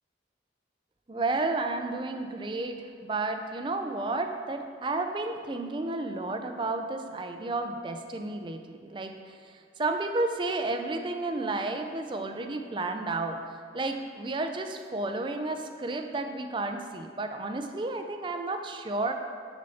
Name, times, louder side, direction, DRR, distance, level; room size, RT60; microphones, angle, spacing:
voice 1, 1.1-13.4 13.7-19.1, right 2 dB, 25° right, 5 dB, 0.4 m, -32 dB
6.4 x 4.1 x 5.6 m, 2.1 s
head